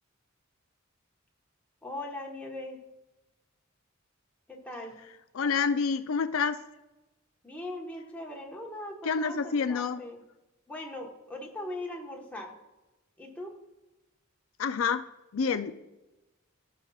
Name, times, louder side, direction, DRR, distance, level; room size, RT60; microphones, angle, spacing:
voice 1, 1.8-2.8 4.5-5.0 7.4-10.2 10.7-12.5 13.2-13.5, left 1 dB, 5° left, -2 dB, 1.3 m, -40 dB
voice 2, 5.3-6.6 9.0-10.0 14.6-15.0 15.3-15.7, left 5 dB, 80° left, 10 dB, 0.4 m, -28 dB
15.5 x 6.1 x 2.4 m, 1.0 s
head